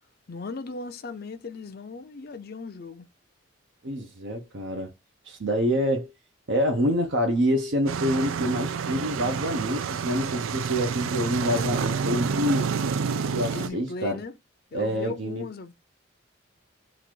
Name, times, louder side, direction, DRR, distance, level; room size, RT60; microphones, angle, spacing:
voice 1, 0.3-3.1 13.3-14.3 14.7-15.7, left 3 dB, 50° left, 0.5 m, -37 dB
voice 2, 3.8-4.9 5.3-6.1 6.5-12.7 13.1-14.2 14.7-15.4, equal, 65° right, 0.8 m, -26 dB
sound 1, 7.9-13.7, right 6 dB, 85° right, 0.4 m, -28 dB
3.9 x 2.5 x 4.6 m
head